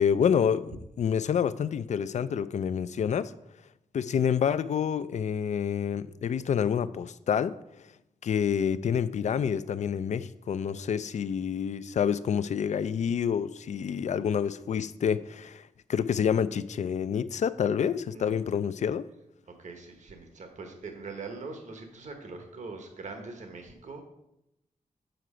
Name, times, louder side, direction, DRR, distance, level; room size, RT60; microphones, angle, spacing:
voice 1, 0.0-3.3 3.9-7.6 8.2-15.6 15.9-19.1, left 7 dB, 55° left, 0.4 m, -28 dB
voice 2, 19.6-24.0, right 3 dB, 60° right, 1.2 m, -42 dB
7.8 x 5.6 x 4.9 m
wide cardioid pair, 120°, 14 cm